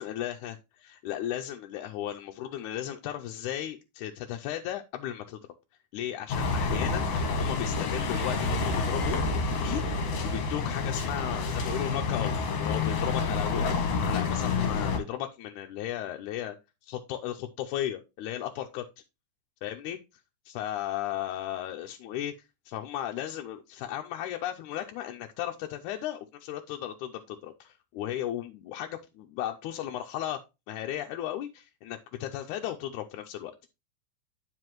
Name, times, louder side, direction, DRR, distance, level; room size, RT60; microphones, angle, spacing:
voice 1, 0.0-5.4 5.9-16.6 16.8-18.9 19.6-20.0 20.5-33.5, left 11 dB, 90° left, 3 dB, 2.0 m, -35 dB
sound 1, 6.3-15.0, left 4 dB, 60° left, 2.3 m, -28 dB
9.6 x 4.8 x 3.0 m, 0.26 s
omnidirectional pair, 3.5 m